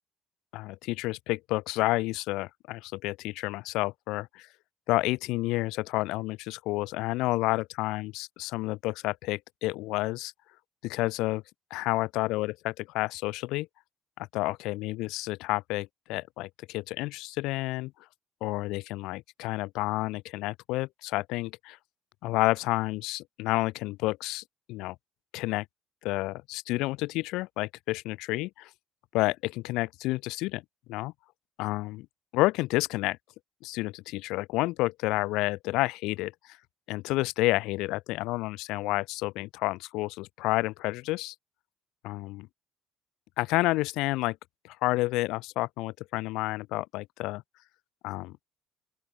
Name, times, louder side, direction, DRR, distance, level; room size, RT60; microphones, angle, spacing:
voice 1, 0.5-4.5 4.9-10.3 10.8-11.4 11.7-13.7 14.3-17.9 18.4-21.8 22.2-24.4 24.7-25.0 25.3-25.7 26.0-28.7 29.1-30.6 30.9-31.1 31.6-32.1 32.3-33.2 33.6-36.3 36.9-41.3 42.0-42.5 43.4-44.4 44.6-47.4 48.0-48.4, left 20 dB, 90° left, 1.8 m, -30 dB
open air
cardioid pair, 170°, 0 cm